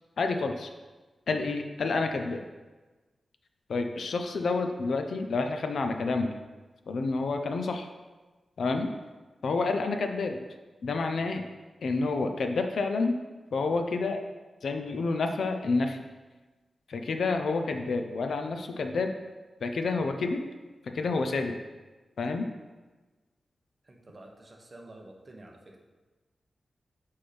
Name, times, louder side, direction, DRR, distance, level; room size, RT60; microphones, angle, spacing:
voice 1, 0.2-0.7 1.3-2.4 3.7-6.4 6.9-7.9 8.6-8.9 9.4-10.4 10.8-11.5 11.8-13.2 13.5-14.2 14.6-16.0 16.9-19.1 19.6-20.5 20.8-21.6 22.2-22.5, left 3 dB, 70° left, 5 dB, 0.5 m, -29 dB
voice 2, 23.8-25.8, right 1 dB, 30° right, 0 dB, 0.8 m, -49 dB
6.0 x 5.5 x 3.3 m, 1.2 s
wide cardioid pair, 170°, 0 cm